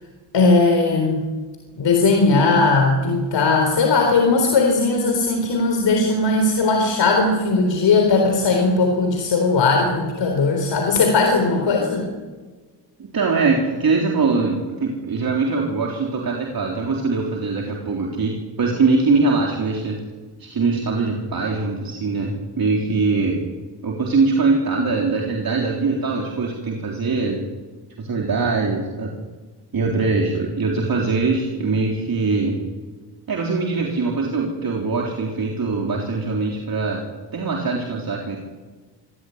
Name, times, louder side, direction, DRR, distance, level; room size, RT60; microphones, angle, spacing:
voice 1, 0.3-1.2 1.8-12.1, left 3 dB, 90° left, 2 dB, 4.2 m, -18 dB
voice 2, 13.0-20.0 20.4-23.4 23.8-27.5 28.0-29.1 29.7-32.6 33.3-37.0 37.3-38.4, right 4 dB, 55° right, -1 dB, 3.9 m, -22 dB
25.5 x 17.0 x 9.5 m, 1.3 s
wide cardioid pair, 115°, 42 cm